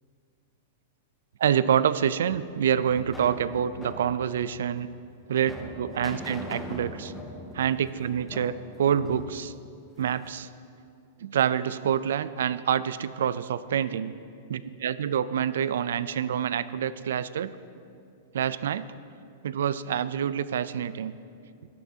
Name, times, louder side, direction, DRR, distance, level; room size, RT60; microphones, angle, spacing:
voice 1, 1.4-4.9 5.3-7.1 7.5-9.5 10.0-10.5 11.2-14.1 14.5-17.5 18.3-18.9 19.4-21.1, right 9 dB, 80° right, 15 dB, 0.3 m, -27 dB
sound 1, 2.3-10.4, left 1 dB, 5° left, 0.6 m, -42 dB
13.0 x 9.2 x 2.7 m, 2.4 s
supercardioid pair, 165°, 0 cm